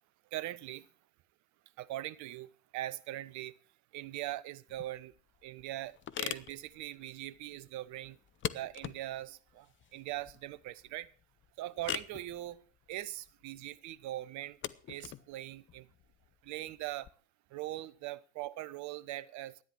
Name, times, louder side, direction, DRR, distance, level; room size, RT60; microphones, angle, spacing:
voice 1, 0.3-0.9 1.8-3.5 3.9-5.1 5.4-8.2 8.5-11.1 11.6-12.6 12.9-14.6 14.9-15.9 16.4-17.1 17.5-19.6, right 15 dB, 45° right, 0.9 m, -41 dB
sound 1, 4.7-17.1, left 10 dB, 30° left, 0.7 m, -44 dB
13.5 x 10.0 x 6.2 m
hypercardioid pair, 75°, 39 cm